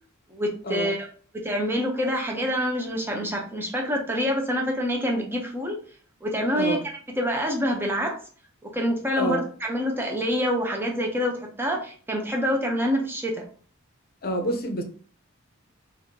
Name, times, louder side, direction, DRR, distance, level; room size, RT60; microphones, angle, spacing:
voice 1, 0.3-1.1 1.3-5.8 6.2-8.2 8.6-13.5, equal, 10° right, 0.7 m, -26 dB
voice 2, 14.2-14.8, equal, 45° left, 0.7 m, -27 dB
5.6 x 2.6 x 2.8 m
head